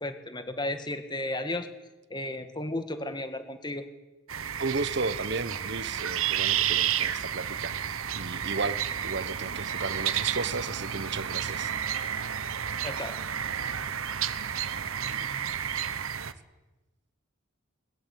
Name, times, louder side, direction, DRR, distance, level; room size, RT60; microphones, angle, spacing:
voice 1, 0.0-1.7 2.1-3.8 12.8-13.1, left 1 dB, 20° left, 1.7 m, -33 dB
sound 1, 4.3-16.3, right 9 dB, 80° right, 1.1 m, -31 dB
voice 2, 4.6-8.8 9.0-11.7, right 3 dB, 55° right, 1.0 m, -34 dB
21.0 x 20.5 x 8.5 m
head